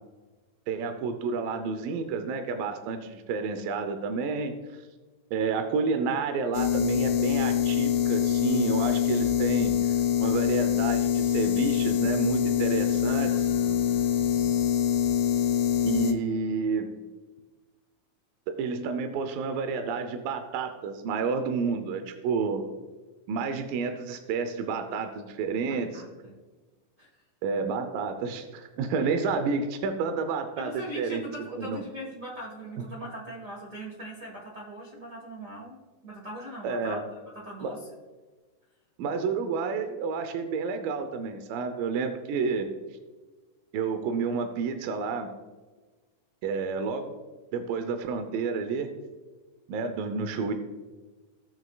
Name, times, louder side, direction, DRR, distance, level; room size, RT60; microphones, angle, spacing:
voice 1, 0.7-4.6 5.3-9.8 10.2-13.5 15.9-16.9 18.5-22.7 23.3-26.0 27.4-31.2 31.6-31.8 32.8-32.9 36.6-37.0 37.6-37.7 39.0-42.7 43.7-45.3 46.4-47.1 47.5-48.9 49.7-50.5, right 5 dB, 85° right, 7 dB, 2.4 m, -30 dB
sound 1, 6.5-16.1, left 9 dB, 75° left, 1.9 m, -25 dB
voice 2, 13.2-14.6 25.6-26.4 27.0-27.2 30.6-37.9, right 1 dB, 70° right, -3 dB, 0.7 m, -41 dB
18.0 x 6.4 x 2.3 m, 1.3 s
omnidirectional pair, 3.9 m